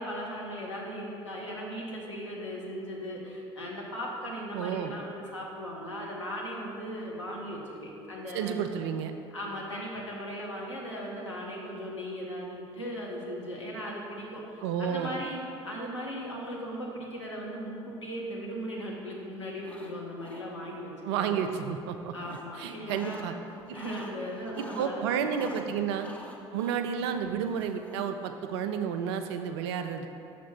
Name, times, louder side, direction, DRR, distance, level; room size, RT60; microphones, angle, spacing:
voice 1, 0.0-8.5 9.3-21.3 22.1-23.3 23.7-25.3 25.6-25.8 28.6-28.8, equal, 85° left, -3 dB, 0.9 m, -38 dB
voice 2, 4.5-5.0 8.3-9.1 14.6-15.2 21.0-23.3 23.7-23.8 24.6-26.1 26.5-30.1, right 7 dB, 65° right, 7 dB, 0.4 m, -31 dB
sound 1, 19.5-19.9 20.2-20.8 21.8-23.3 23.6-24.9 25.3-28.2, left 1 dB, 10° left, 0.8 m, -48 dB
5.9 x 4.1 x 5.9 m, 2.7 s
figure-of-eight pair, 55°, 15 cm